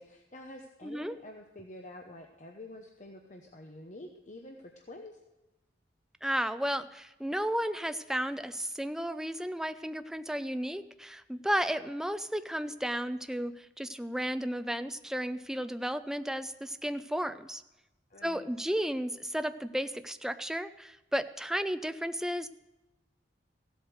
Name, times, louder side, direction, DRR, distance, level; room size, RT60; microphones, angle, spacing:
voice 1, 0.0-5.2 18.1-18.5, left 1 dB, 45° left, 3 dB, 0.9 m, -48 dB
voice 2, 0.8-1.2 6.2-17.6 18.2-22.5, equal, 5° right, 10 dB, 0.5 m, -33 dB
15.5 x 8.0 x 6.4 m, 1.0 s
head